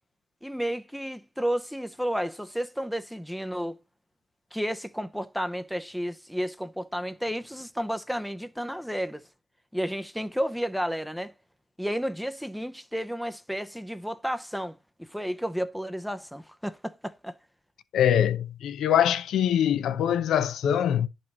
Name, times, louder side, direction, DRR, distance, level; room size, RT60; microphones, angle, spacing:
voice 1, 0.4-3.8 4.5-9.2 9.7-11.3 11.8-17.4, equal, ahead, 0.7 m, -32 dB
voice 2, 17.9-21.1, left 9 dB, 70° left, 0.7 m, -23 dB
10.5 x 5.4 x 4.1 m
cardioid pair, 90°, 0 cm